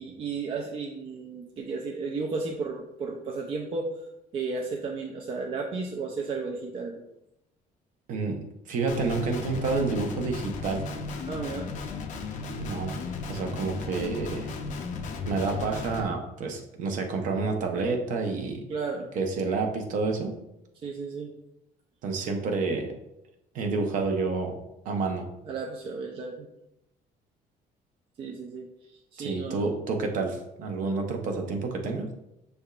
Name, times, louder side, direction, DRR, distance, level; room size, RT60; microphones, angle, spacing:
voice 1, 0.0-3.9 4.3-7.0 11.3-11.7 18.7-19.1 20.8-21.3 25.5-26.5 28.2-29.6, right 4 dB, 35° right, 1 dB, 0.4 m, -33 dB
voice 2, 8.1-10.8 12.6-13.0 13.3-14.5 15.2-18.6 19.2-20.3 22.0-22.9 23.5-24.5 24.8-25.2 29.2-32.1, right 4 dB, 55° right, 3 dB, 0.8 m, -29 dB
Guitar, 8.9-16.0, left 4 dB, 55° left, 0.6 m, -35 dB
6.5 x 3.4 x 2.4 m, 0.86 s
cardioid pair, 165°, 16 cm